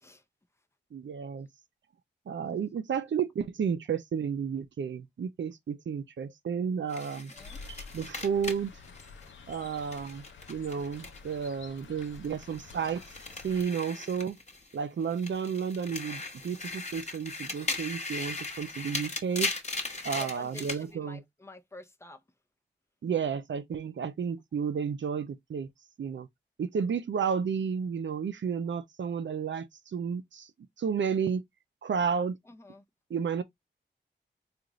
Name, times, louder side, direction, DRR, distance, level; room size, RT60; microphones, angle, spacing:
voice 1, 0.9-1.5 2.3-7.3 7.7-8.7 9.5-13.0 13.4-14.4 14.7-19.5 20.0-21.2 23.0-25.7 26.0-26.3 26.6-30.5 30.8-31.4 31.8-32.4 33.1-33.4, right 6 dB, 75° right, 0.6 m, -32 dB
sound 1, 6.9-11.5 11.8-14.8 15.1-20.8, left 3 dB, 35° left, 1.0 m, -38 dB
voice 2, 7.1-7.6 20.2-22.2 32.5-32.8, left 2 dB, 15° left, 0.6 m, -49 dB
sound 2, 7.3-13.6, left 4 dB, 85° left, 0.6 m, -49 dB
3.7 x 2.5 x 3.0 m
cardioid pair, 50°, 19 cm